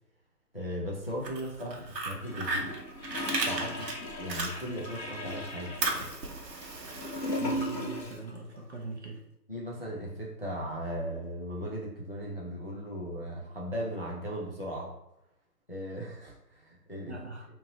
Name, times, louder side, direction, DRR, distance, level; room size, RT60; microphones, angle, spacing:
voice 1, 0.5-2.7 3.4-3.9 4.2-6.1 9.5-14.9 15.7-17.2, equal, 40° left, -3 dB, 0.4 m, -37 dB
Fire, 1.1-5.0 5.3-8.1, right 3 dB, 75° right, 0.9 m, -35 dB
Gurgling / Toilet flush, 2.2-8.3 8.5-8.6, left 1 dB, 80° left, 1.3 m, -37 dB
voice 2, 7.3-9.2 17.1-17.5, right 2 dB, 45° right, -1 dB, 0.6 m, -41 dB
3.0 x 2.7 x 3.8 m, 0.83 s
hypercardioid pair, 175°, 50 cm